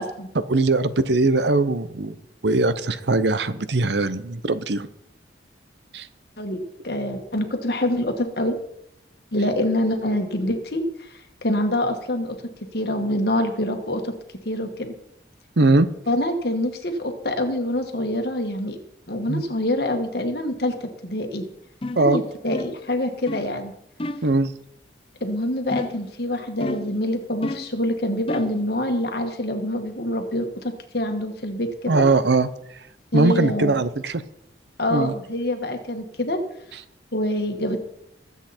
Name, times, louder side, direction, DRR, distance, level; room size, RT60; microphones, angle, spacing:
voice 1, 0.3-4.9 5.9-6.1 15.6-15.9 19.3-19.4 22.0-22.2 24.2-24.5 31.9-32.9 33.1-34.2 34.9-35.1 36.7-36.8, right 3 dB, 70° right, 14 dB, 0.8 m, -21 dB
voice 2, 6.4-8.6 9.3-12.4 12.7-14.1 14.5-14.9 16.1-18.8 19.1-20.7 21.0-21.4 22.0-23.7 25.2-31.9 33.1-33.8 34.8-36.4 37.1-37.8, left 1 dB, 55° left, 4 dB, 1.8 m, -25 dB
sound 1, 21.8-22.1 22.5-22.8 23.3-23.5 24.0-24.3 25.7-26.1 26.6-27.0 27.4-27.8 28.3-28.6, left 2 dB, 30° left, 0.6 m, -31 dB
20.5 x 8.3 x 4.4 m, 0.78 s
head